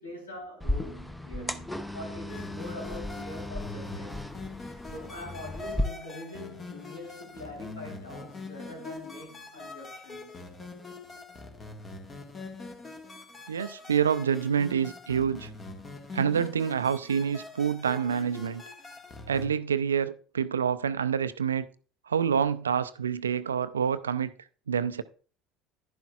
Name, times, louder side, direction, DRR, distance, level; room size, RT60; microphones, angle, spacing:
voice 1, 0.0-4.2 4.9-10.4, left 1 dB, 85° left, 3.5 m, -43 dB
sound 1, 0.6-5.8, left 1 dB, 5° left, 0.8 m, -35 dB
sound 2, 2.3-19.5, left 3 dB, 30° left, 1.6 m, -43 dB
voice 2, 13.5-15.5 16.1-18.6 19.3-21.7 22.1-24.3 24.7-25.0, right 7 dB, 80° right, 0.5 m, -27 dB
11.0 x 10.5 x 2.4 m
figure-of-eight pair, 65°, 0 cm